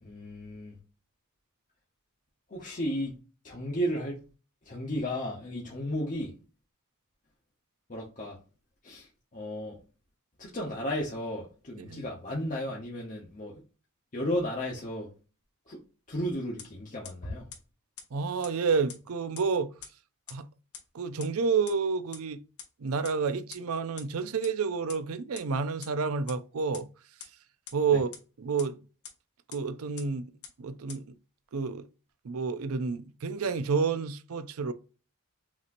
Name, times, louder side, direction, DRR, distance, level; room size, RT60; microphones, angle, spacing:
voice 1, 0.0-0.8 2.5-3.1 3.4-4.2 4.6-6.3 7.9-8.4 8.8-9.1 9.3-9.8 10.4-13.5 14.1-15.1 15.7-15.8 16.1-17.5 27.9-28.0, equal, 35° left, 0.9 m, -34 dB
sound 1, 16.6-16.7 17.0-17.1 17.5-17.6 18.0-18.1 18.4-18.5 18.9-19.0 19.4-19.5 19.8-19.9 20.3-20.4 20.7-20.8 21.2-21.3 21.7-21.8 22.1-22.2 22.6-22.7 23.0-23.1 23.5-23.6 24.0-24.1 24.4-24.5 24.9-25.0 25.4-25.5 25.8-25.9 26.3-26.4 26.7-26.8 27.2-27.3 27.7-27.8 28.1-28.2 28.6-28.7 29.0-29.1 29.5-29.6 30.0-30.1 30.4-30.5 30.9-31.0, left 8 dB, 75° left, 1.2 m, -42 dB
voice 2, 18.1-19.7 20.3-20.5 20.9-22.4 22.8-26.9 27.7-28.1 28.4-28.8 29.5-30.3 30.6-31.0 31.5-31.9 32.2-34.7, right 5 dB, 70° right, 0.5 m, -29 dB
5.9 x 2.9 x 2.6 m
head